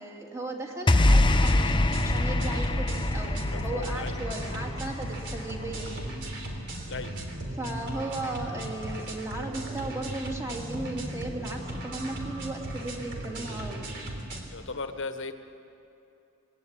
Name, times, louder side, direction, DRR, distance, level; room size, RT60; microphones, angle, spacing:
voice 1, 0.0-6.1 7.5-13.9, right 2 dB, 15° right, 0 dB, 2.7 m, -36 dB
sound 1, 0.9-7.3, left 1 dB, 20° left, 0.8 m, -25 dB
sound 2, 1.1-14.4, right 1 dB, 55° right, 3.6 m, -37 dB
voice 2, 3.5-4.2 6.9-7.2 14.5-15.3, left 3 dB, 60° left, 8 dB, 1.4 m, -36 dB
26.0 x 19.5 x 8.9 m, 2.8 s
head